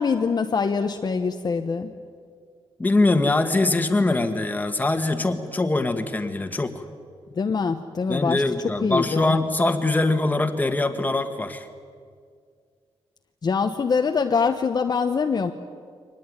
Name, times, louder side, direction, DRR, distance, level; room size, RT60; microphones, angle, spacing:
voice 1, 0.0-1.9 7.3-9.4 13.4-15.5, left 5 dB, 40° left, 5 dB, 1.0 m, -24 dB
voice 2, 2.8-6.8 8.1-11.7, left 2 dB, 15° left, 7 dB, 1.7 m, -23 dB
24.0 x 19.5 x 9.7 m, 2.1 s
wide cardioid pair, 125°, 10 cm